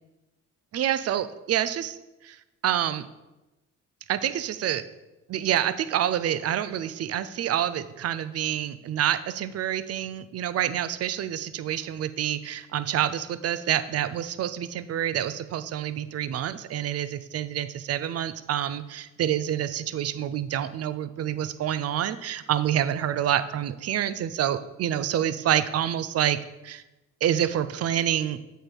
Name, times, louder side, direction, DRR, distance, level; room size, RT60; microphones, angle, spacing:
voice 1, 0.7-2.0 2.2-2.4 2.6-3.1 4.1-4.8 5.3-26.4 26.6-26.8 27.2-28.4, right 10 dB, 55° right, 13 dB, 0.5 m, -27 dB
7.8 x 4.5 x 5.0 m, 1.0 s
cardioid pair, 90°, 30 cm